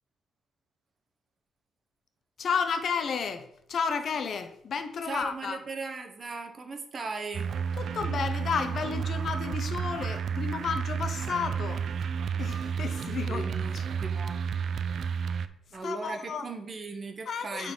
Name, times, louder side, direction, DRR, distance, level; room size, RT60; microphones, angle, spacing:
voice 1, 2.4-5.6 7.8-11.8 12.4-13.5 13.7-13.8 15.8-16.4 17.3-17.7, left 6 dB, 55° left, 0.8 m, -32 dB
voice 2, 5.0-7.5 13.2-14.4 15.7-17.7, right 3 dB, 40° right, 1.0 m, -38 dB
sound 1, 7.3-15.5, right 6 dB, 60° right, 0.4 m, -31 dB
8.6 x 4.0 x 3.9 m
cardioid pair, 90°, 0 cm